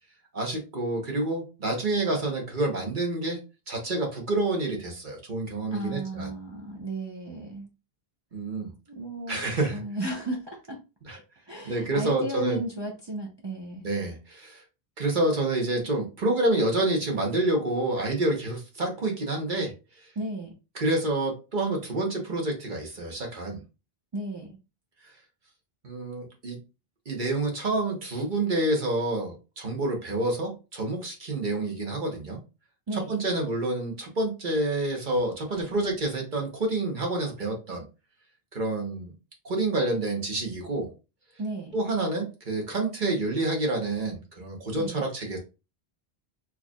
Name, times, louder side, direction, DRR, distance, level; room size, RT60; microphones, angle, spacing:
voice 1, 0.3-3.4 3.7-6.3 8.3-8.7 9.3-9.8 11.0-11.2 11.6-12.6 13.8-14.6 15.0-19.7 20.7-23.6 25.8-26.6 27.1-32.4 32.9-37.8 38.5-39.1 39.4-40.9 41.7-45.4, right 2 dB, 50° right, 1 dB, 1.2 m, -28 dB
voice 2, 5.7-7.7 8.9-9.4 9.7-10.8 11.5-13.8 20.2-20.5 24.1-24.6 32.9-33.1 41.4-41.7 44.8-45.0, right 2 dB, 30° right, 0 dB, 0.7 m, -34 dB
4.5 x 2.9 x 2.3 m, 0.29 s
omnidirectional pair, 1.0 m